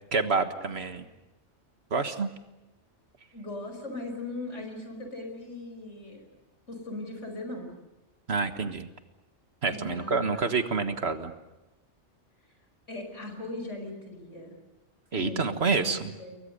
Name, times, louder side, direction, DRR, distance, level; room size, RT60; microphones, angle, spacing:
voice 1, 0.1-1.0 1.9-2.3 8.3-8.9 9.6-11.3 15.1-16.1, right 4 dB, 60° right, 8 dB, 1.7 m, -28 dB
voice 2, 3.3-6.2 6.7-7.7 9.7-10.4 12.9-14.6 15.1-16.4, left 2 dB, 85° left, 5 dB, 5.8 m, -39 dB
29.0 x 22.5 x 6.8 m, 1.0 s
omnidirectional pair, 1.2 m